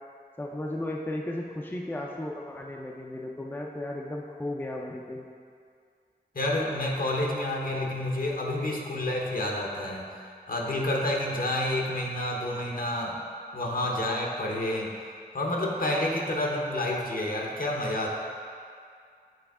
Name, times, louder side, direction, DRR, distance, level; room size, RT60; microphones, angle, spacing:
voice 1, 0.4-5.2, left 1 dB, 10° left, -1 dB, 0.4 m, -35 dB
voice 2, 6.3-10.1 10.5-13.2 13.5-14.9 15.3-18.1, left 1 dB, 60° left, -1 dB, 0.9 m, -29 dB
7.8 x 3.4 x 3.5 m, 2.2 s
wide cardioid pair, 65°, 17 cm